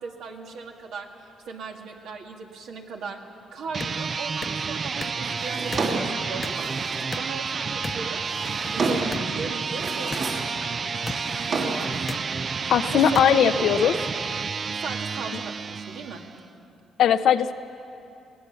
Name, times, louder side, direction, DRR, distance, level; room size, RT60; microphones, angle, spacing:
voice 1, 0.0-3.2 3.5-6.6 6.9-8.3 8.7-10.3 10.8-12.2 12.6-13.9 14.8-16.3, right 4 dB, 80° right, 2 dB, 2.0 m, -37 dB
sound 1, 3.6-16.4, right 5 dB, 40° right, 0.5 m, -30 dB
sound 2, 3.8-4.0 4.4-4.6 5.0-5.2 5.7-5.9 6.4-6.6 7.1-7.4 7.8-8.0 9.1-9.3 10.1-10.2 11.1-11.2 12.1-12.2 13.1-13.3, left 4 dB, 30° left, 0.8 m, -34 dB
Drawer open or close, 5.3-7.2 8.0-9.2 9.6-10.6 10.8-12.0, right 3 dB, 60° right, 3.3 m, -30 dB
voice 2, 12.7-13.9 17.0-17.5, left 9 dB, 75° left, 11 dB, 0.7 m, -19 dB
21.0 x 18.0 x 7.1 m, 2.7 s
cardioid pair, 90°, 0 cm